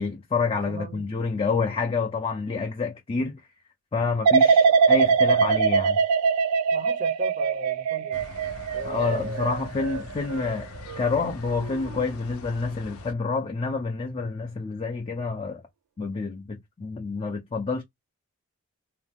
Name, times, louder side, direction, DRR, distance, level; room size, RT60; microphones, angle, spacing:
voice 1, 0.0-3.4 3.9-6.0 8.8-10.7 11.0-15.6 16.0-17.8, left 4 dB, 25° left, 0.4 m, -28 dB
voice 2, 0.5-1.1 4.6-4.9 6.7-8.2 8.7-9.5, right 1 dB, 35° right, 0.5 m, -36 dB
sound 1, 4.2-11.2 11.6-12.0, right 5 dB, 90° right, 0.3 m, -22 dB
sound 2, 8.1-13.1, left 3 dB, 75° left, 0.6 m, -43 dB
2.5 x 2.2 x 3.3 m
head